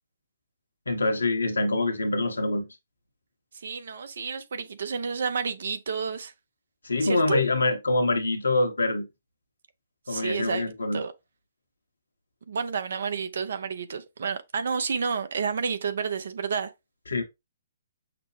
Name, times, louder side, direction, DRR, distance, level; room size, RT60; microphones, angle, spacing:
voice 1, 0.9-2.7 6.8-9.0 10.1-11.0 17.1-17.2, left 2 dB, 80° left, 1.0 m, -25 dB
voice 2, 3.6-6.3 7.0-7.4 10.1-10.6 10.9-11.1 12.5-16.7, right 5 dB, 60° right, 0.6 m, -30 dB
5.9 x 2.1 x 3.2 m
figure-of-eight pair, 125°, 0 cm